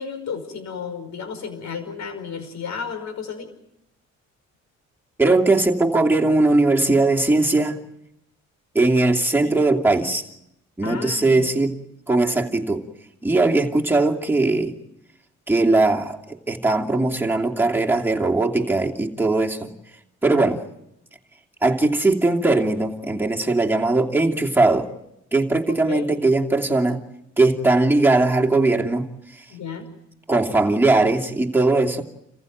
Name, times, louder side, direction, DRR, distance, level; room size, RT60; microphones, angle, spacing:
voice 1, 0.0-3.5 9.4-9.6 10.8-11.5 20.3-20.5 25.9-26.0 29.5-29.9, left 6 dB, 65° left, 8 dB, 5.4 m, -33 dB
voice 2, 5.2-7.8 8.7-10.2 10.8-11.8 12.1-12.8 13.2-14.7 15.5-19.7 20.2-20.6 21.6-24.9 25.3-27.0 27.4-29.1 30.3-32.0, right 2 dB, 5° right, 0 dB, 2.7 m, -19 dB
28.5 x 15.0 x 9.2 m, 0.83 s
cardioid pair, 90°, 30 cm